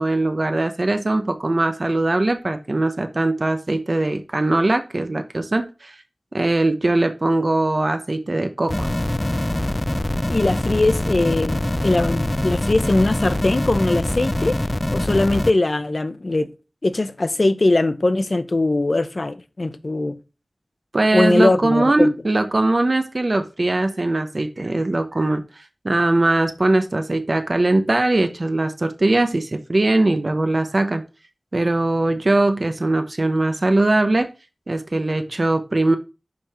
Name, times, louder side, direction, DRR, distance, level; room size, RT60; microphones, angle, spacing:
voice 1, 0.0-6.0 6.3-8.9 20.9-25.4 25.8-31.0 31.5-34.3 34.7-36.0, right 2 dB, 55° right, 0.8 m, -20 dB
sound 1, 8.7-15.5, left 1 dB, 25° left, 0.4 m, -24 dB
voice 2, 10.3-14.6 14.9-16.5 16.8-20.2 21.1-22.1, left 2 dB, 60° left, 0.8 m, -20 dB
5.4 x 5.1 x 4.3 m
wide cardioid pair, 55°, 0 cm